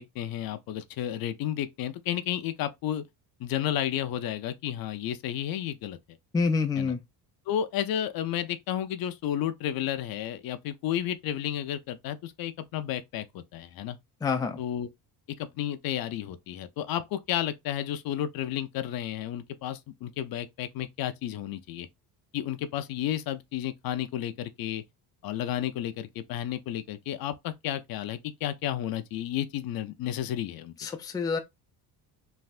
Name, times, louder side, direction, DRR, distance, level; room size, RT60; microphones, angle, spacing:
voice 1, 0.0-3.0 3.4-6.0 6.8-6.9 7.5-14.0 14.6-14.9 15.4-21.9 22.3-24.8 25.2-30.7, left 11 dB, 60° left, 0.5 m, -32 dB
voice 2, 6.3-7.0 14.2-14.6 30.8-31.4, left 5 dB, 10° left, 0.4 m, -27 dB
3.3 x 2.6 x 2.4 m
cardioid pair, 115°, 40 cm